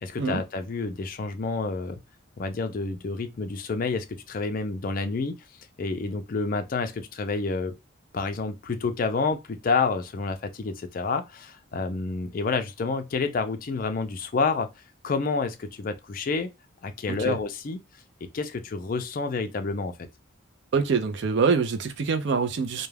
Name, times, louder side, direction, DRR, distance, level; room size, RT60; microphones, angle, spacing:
voice 1, 0.0-2.0 2.4-5.4 5.8-7.7 8.1-14.7 15.0-16.5 16.8-17.8 18.3-20.0, left 4 dB, 45° left, 0.4 m, -29 dB
voice 2, 20.7-22.9, right 5 dB, 60° right, 0.4 m, -25 dB
2.2 x 2.2 x 3.2 m
head